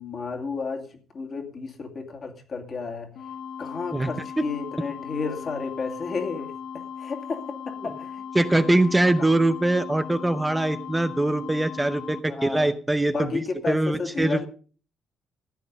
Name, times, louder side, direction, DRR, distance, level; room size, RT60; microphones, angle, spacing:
voice 1, 0.0-3.1 3.6-8.2 9.2-9.3 12.2-12.7 13.1-14.5, left 4 dB, 35° left, 4 dB, 2.4 m, -32 dB
sound 1, 3.2-12.2, left 7 dB, 80° left, 1.2 m, -38 dB
voice 2, 8.3-14.5, right 2 dB, 10° right, 9 dB, 0.7 m, -23 dB
15.0 x 9.4 x 5.4 m, 0.40 s
cardioid pair, 145°, 0 cm